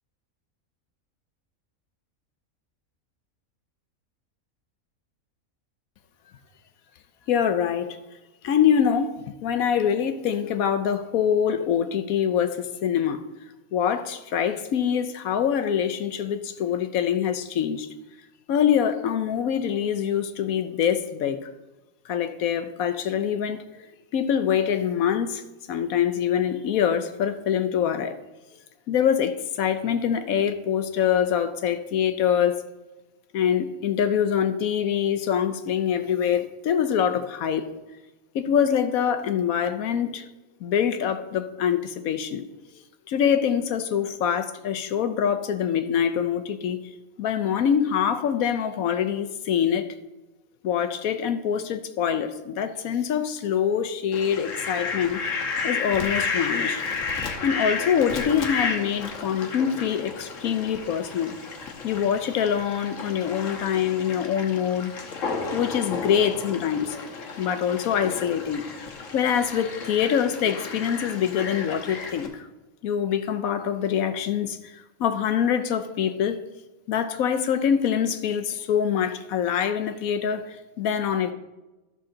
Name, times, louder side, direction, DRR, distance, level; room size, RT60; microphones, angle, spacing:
voice 1, 7.3-8.0 8.4-13.2 13.7-17.9 18.5-21.5 22.1-23.8 24.1-25.4 25.7-28.2 28.9-32.6 33.3-37.7 38.3-40.3 40.6-42.4 43.1-46.8 47.2-49.9 50.6-55.2 55.6-56.8 57.4-61.3 61.8-64.9 65.5-67.0 67.4-68.6 69.1-72.5 72.8-76.4 76.9-81.3, left 8 dB, 80° left, 1.2 m, -24 dB
Fowl, 54.1-72.3, left 4 dB, 65° left, 1.4 m, -32 dB
13.0 x 6.4 x 3.8 m
omnidirectional pair, 1.5 m